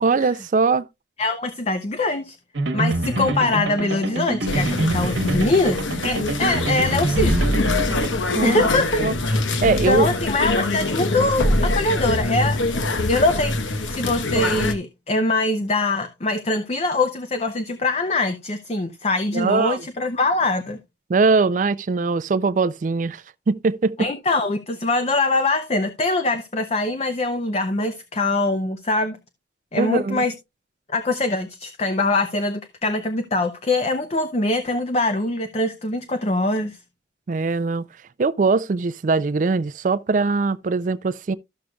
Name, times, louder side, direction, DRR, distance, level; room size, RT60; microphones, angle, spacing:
voice 1, 0.0-0.9 8.3-8.6 9.0-9.1 9.6-10.1 19.3-19.8 21.1-24.1 29.8-30.2 37.3-37.9 38.2-41.3, right 4 dB, 45° right, 0.4 m, -21 dB
voice 2, 1.2-2.4 2.7-7.4 8.4-20.8 24.0-29.2 29.7-30.3 30.9-36.8, left 2 dB, 35° left, 0.6 m, -23 dB
sound 1, 2.5-8.1, right 2 dB, 80° right, 1.1 m, -25 dB
sound 2, 4.5-14.7, left 2 dB, 85° left, 1.1 m, -23 dB
13.5 x 6.4 x 2.3 m
head